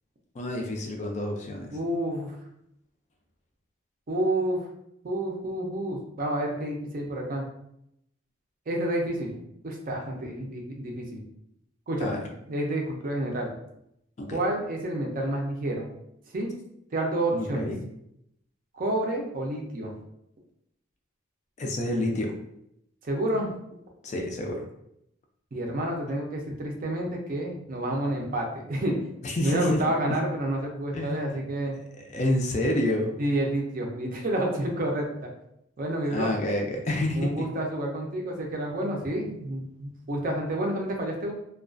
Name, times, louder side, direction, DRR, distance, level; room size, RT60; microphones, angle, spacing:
voice 1, 0.4-1.7 12.0-12.2 14.2-14.4 17.3-17.8 21.6-22.3 24.0-24.6 29.2-30.2 30.9-31.4 31.9-33.1 36.1-37.5, left 1 dB, 35° left, 1 dB, 0.3 m, -29 dB
voice 2, 1.7-2.4 4.1-4.6 5.0-7.4 8.7-9.4 9.6-11.2 11.9-12.2 12.5-13.5 14.3-15.9 16.3-16.5 16.9-17.7 18.7-19.9 23.0-23.6 25.5-29.0 29.4-31.8 33.2-35.1 35.8-36.3 37.2-41.3, right 1 dB, 45° right, 0 dB, 0.4 m, -29 dB
2.3 x 2.2 x 2.4 m, 0.78 s
head